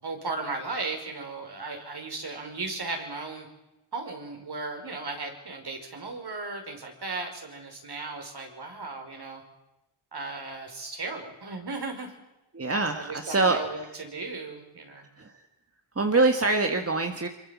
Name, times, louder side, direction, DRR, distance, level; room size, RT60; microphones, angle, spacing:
voice 1, 0.0-3.5 3.9-9.4 10.1-12.1 12.9-15.1, right 3 dB, 50° right, 4 dB, 5.7 m, -36 dB
voice 2, 12.5-13.6 15.2-15.3 16.0-17.3, right 3 dB, 30° right, 5 dB, 1.9 m, -24 dB
25.0 x 23.0 x 7.4 m, 0.98 s
cardioid pair, 80°, 49 cm